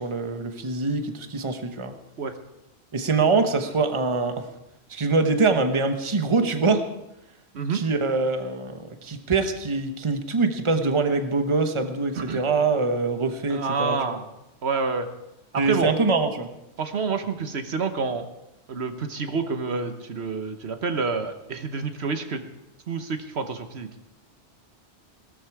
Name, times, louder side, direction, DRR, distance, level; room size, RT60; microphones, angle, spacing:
voice 1, 0.0-1.9 2.9-4.5 4.9-6.8 7.7-14.2 15.6-16.5, right 3 dB, 30° right, 6 dB, 1.1 m, -24 dB
voice 2, 7.5-7.8 12.2-12.4 13.5-14.2 14.6-15.1 15.5-15.9 16.8-18.2 18.7-22.4 22.9-23.9, right 4 dB, 75° right, 8 dB, 1.3 m, -28 dB
17.0 x 13.0 x 4.7 m, 0.89 s
omnidirectional pair, 1.1 m